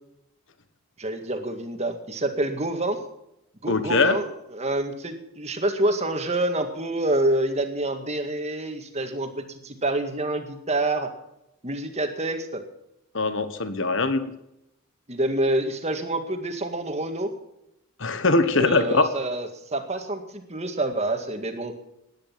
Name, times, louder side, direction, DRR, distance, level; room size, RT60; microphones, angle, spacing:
voice 1, 1.0-3.0 3.6-11.1 11.6-12.6 15.1-17.3 18.6-21.7, right 1 dB, 30° right, 6 dB, 1.9 m, -27 dB
voice 2, 3.7-4.2 13.1-14.2 18.0-19.0, left 3 dB, 60° left, 11 dB, 1.3 m, -21 dB
18.0 x 10.5 x 5.8 m, 0.83 s
head